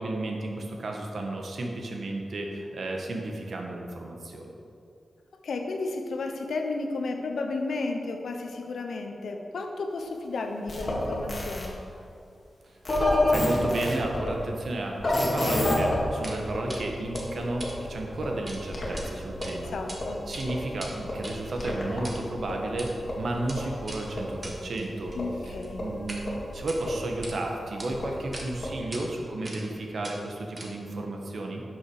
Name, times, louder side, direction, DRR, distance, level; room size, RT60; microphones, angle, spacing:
voice 1, 0.0-4.5 13.3-17.6 17.9-19.7 20.3-25.1 25.4-26.2 26.5-31.6, right 2 dB, 65° right, 1 dB, 1.4 m, -33 dB
voice 2, 5.4-11.8 19.7-20.2 25.2-25.8, left 3 dB, 90° left, 4 dB, 1.0 m, -33 dB
sound 1, 10.7-11.7 12.8-14.3 15.0-16.0 16.4-19.0 19.3-22.0 22.4-24.4 25.1-27.2 27.9-28.8, left 1 dB, 40° left, 2.0 m, -30 dB
sound 2, 16.2-16.4 16.7-16.8 17.1-18.6 18.9-19.0 19.4-20.0 20.2-26.2 26.6-27.4 27.8-27.9 28.3-28.5 28.9-29.0 29.4-29.7 30.0-31.0, right 1 dB, 30° right, 1.5 m, -42 dB
11.5 x 6.2 x 4.9 m, 2.6 s
wide cardioid pair, 115°, 0 cm